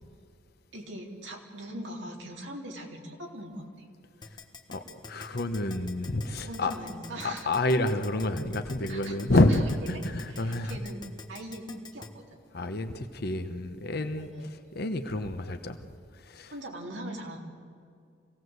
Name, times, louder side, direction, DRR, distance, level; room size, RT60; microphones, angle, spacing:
voice 1, 0.7-3.9 6.4-7.5 8.9-9.6 9.9-11.0 11.3-11.7 11.9-12.3 14.2-14.5 16.5-17.4, right 1 dB, 60° right, 0 dB, 3.5 m, -41 dB
Keyboard (musical), 4.2-12.1, left 4 dB, 25° left, 1.4 m, -44 dB
voice 2, 4.7-6.7 7.2-9.6 9.9-10.8 12.5-14.3 14.7-15.8 16.3-16.5, left 1 dB, 50° left, 7 dB, 1.1 m, -28 dB
25.0 x 17.5 x 8.1 m, 2.3 s
head